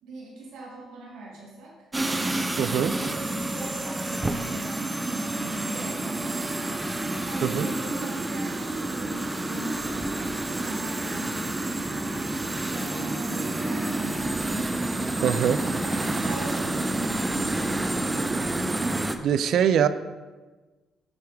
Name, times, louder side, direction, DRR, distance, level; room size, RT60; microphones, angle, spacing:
voice 1, 0.0-1.7 2.5-6.6 7.3-12.0 12.7-14.3 15.2-18.1, right 2 dB, 90° right, -3 dB, 1.8 m, -41 dB
sound 1, 1.9-19.2, right 2 dB, 15° right, 0.5 m, -29 dB
voice 2, 2.6-2.9 7.4-7.7 15.2-15.6 19.2-19.9, right 9 dB, 70° right, 13 dB, 0.3 m, -22 dB
8.1 x 3.5 x 4.7 m, 1.3 s
cardioid pair, 90°, 0 cm